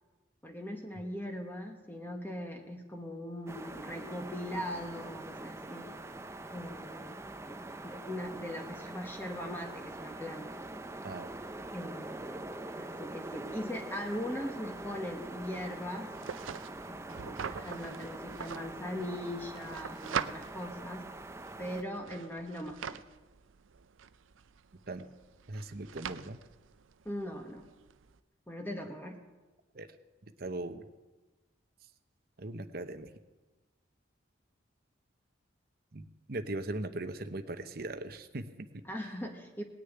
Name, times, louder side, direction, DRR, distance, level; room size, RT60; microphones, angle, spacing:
voice 1, 0.4-5.9 6.5-7.2 7.5-10.6 11.7-16.1 16.9-21.1 21.6-23.0 27.0-27.7 28.5-29.3 38.8-39.6, equal, 10° left, 3 dB, 1.2 m, -40 dB
sound 1, 3.5-21.8, right 2 dB, 15° right, 0.5 m, -44 dB
sound 2, 14.8-28.2, right 7 dB, 85° right, 0.5 m, -44 dB
voice 2, 25.5-26.4 29.7-29.9 30.4-30.8 32.4-33.1 35.9-38.8, right 2 dB, 50° right, 9 dB, 0.9 m, -39 dB
19.5 x 6.7 x 9.2 m, 1.2 s
head